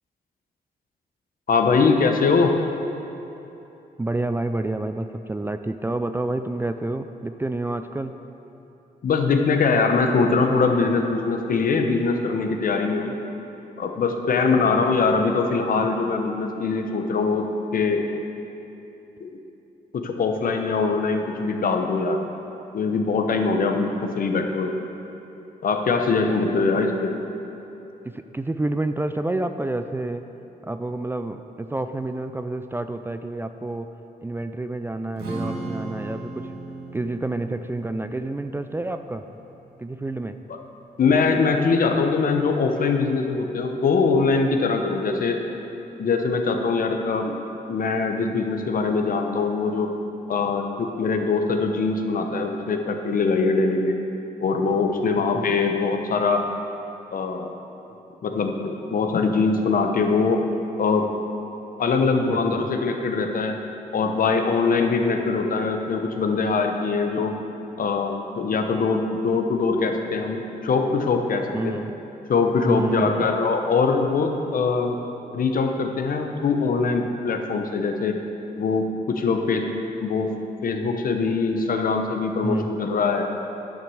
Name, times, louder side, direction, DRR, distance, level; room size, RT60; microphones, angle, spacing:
voice 1, 1.5-2.5 9.0-13.1 13.8-18.0 19.2-19.3 19.9-22.2 22.7-24.7 25.6-27.1 40.5-40.6 41.0-45.4 46.0-47.3 47.7-49.9 50.3-53.9 54.4-56.4 57.1-57.5 58.2-60.4 60.8-61.0 61.8-63.6 63.9-67.4 67.8-71.8 72.3-75.0 75.3-78.2 78.6-79.7 80.0-80.3 80.6-83.3, left 4 dB, 60° left, 4 dB, 1.0 m, -22 dB
voice 2, 4.0-8.1 26.5-26.6 28.0-30.2 30.6-33.9 34.2-36.6 36.9-39.2 39.8-40.4 55.1-55.5 62.0-62.7 71.5-72.0 72.7-73.3 82.4-82.7, right 2 dB, 15° right, 8 dB, 0.4 m, -29 dB
Strum, 35.2-41.4, right 2 dB, 75° right, 1.9 m, -38 dB
10.5 x 6.2 x 6.4 m, 3.0 s
cardioid pair, 80°, 17 cm